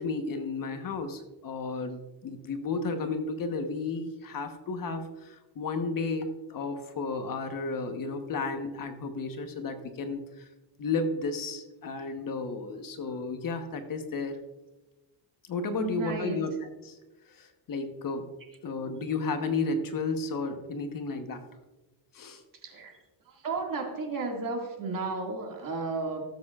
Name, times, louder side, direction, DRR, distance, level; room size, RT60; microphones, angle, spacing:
voice 1, 0.0-10.5 10.8-14.4 15.5-16.5 16.8-17.0 17.3-18.3 18.6-21.4 22.1-22.4, left 3 dB, 45° left, 6 dB, 1.1 m, -33 dB
voice 2, 15.8-16.4 22.6-22.9 23.3-26.2, right 4 dB, 45° right, 1 dB, 2.0 m, -33 dB
17.5 x 7.7 x 2.4 m, 1.1 s
cardioid pair, 135°, 47 cm